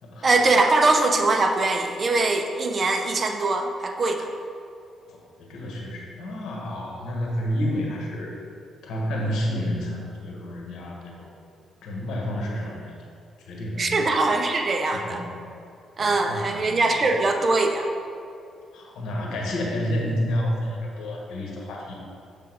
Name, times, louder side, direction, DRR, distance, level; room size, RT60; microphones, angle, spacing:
voice 1, 0.2-4.3 13.8-15.2 16.0-17.9, right 3 dB, 40° right, 4 dB, 0.6 m, -22 dB
voice 2, 5.1-8.4 8.8-11.3 11.8-12.9 13.5-14.1 14.8-15.3 16.0-17.1 18.7-21.9, equal, 80° left, -1 dB, 1.3 m, -30 dB
6.7 x 3.6 x 4.6 m, 2.5 s
cardioid pair, 90°, 0 cm